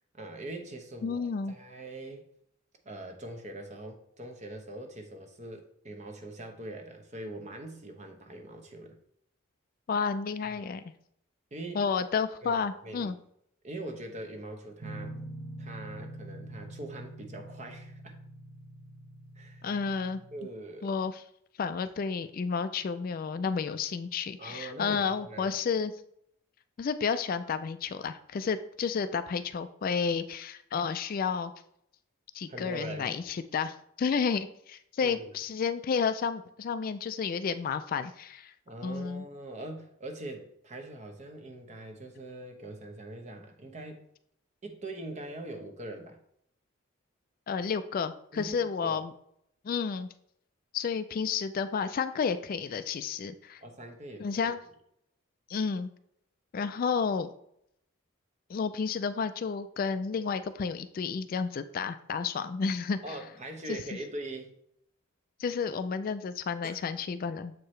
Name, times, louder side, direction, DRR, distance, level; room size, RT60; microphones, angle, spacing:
voice 1, 0.1-2.2 2.8-9.0 10.5-10.6 11.5-11.8 12.4-13.1 13.6-15.2 15.6-18.1 19.3-19.7 20.3-20.9 24.4-25.5 32.5-33.1 35.0-35.3 38.7-44.0 44.6-46.2 48.3-49.0 53.6-54.6 63.0-64.5 66.6-66.8, right 1 dB, 35° right, 5 dB, 0.8 m, -42 dB
voice 2, 1.0-1.5 9.9-10.8 11.7-13.2 19.6-20.2 20.8-21.2 21.6-25.9 26.8-31.5 32.3-38.5 38.8-39.3 47.5-49.1 49.6-50.1 50.7-53.6 54.2-54.6 55.5-55.9 56.5-57.3 58.5-63.2 63.7-63.8 65.4-67.5, left 5 dB, 45° left, 11 dB, 0.3 m, -31 dB
sound 1, 14.8-20.4, right 1 dB, 65° right, 0.9 m, -44 dB
7.6 x 4.6 x 3.1 m, 0.71 s
head